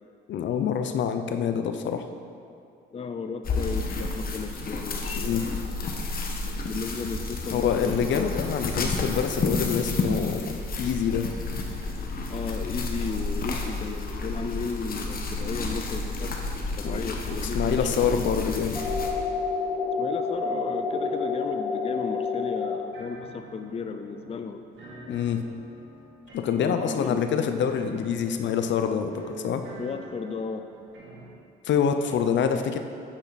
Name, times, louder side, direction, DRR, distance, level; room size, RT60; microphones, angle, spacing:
voice 1, 0.3-2.1 5.2-5.4 7.5-11.3 16.8-17.0 17.3-18.8 25.1-25.4 26.3-29.6 31.6-32.8, left 7 dB, 65° left, 7 dB, 0.7 m, -26 dB
voice 2, 2.9-5.6 6.6-8.4 12.3-18.3 20.0-24.6 26.6-27.3 29.8-30.7, left 5 dB, 30° left, 7 dB, 0.5 m, -34 dB
sound 1, 3.4-19.1, left 3 dB, 45° left, 1.2 m, -31 dB
sound 2, 18.7-22.7, left 4 dB, 5° left, 1.9 m, -28 dB
sound 3, 22.9-31.3, right 2 dB, 70° right, 2.5 m, -46 dB
8.7 x 8.4 x 4.1 m, 2.5 s
cardioid pair, 90°, 20 cm